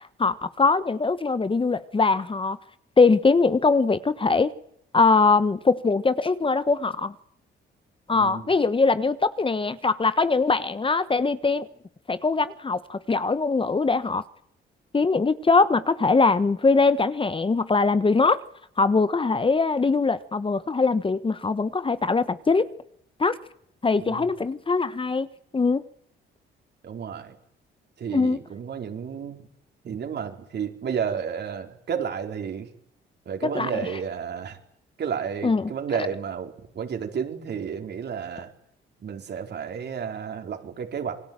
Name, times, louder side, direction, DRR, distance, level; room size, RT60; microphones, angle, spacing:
voice 1, 0.0-2.6 3.0-4.5 4.9-7.1 8.1-11.7 12.1-14.2 14.9-18.4 18.8-22.7 23.2-23.4 23.8-25.3 25.5-25.8 28.1-28.4 33.4-33.9 35.4-35.7 36.0-36.1, left 4 dB, 25° left, 1.4 m, -22 dB
voice 2, 8.1-8.4 24.0-24.3 26.8-27.3 28.0-29.5 29.8-32.7 33.3-34.6 35.0-38.5 39.0-41.2, right 7 dB, 60° right, 4.7 m, -32 dB
28.0 x 20.5 x 9.1 m
cardioid pair, 90°, 20 cm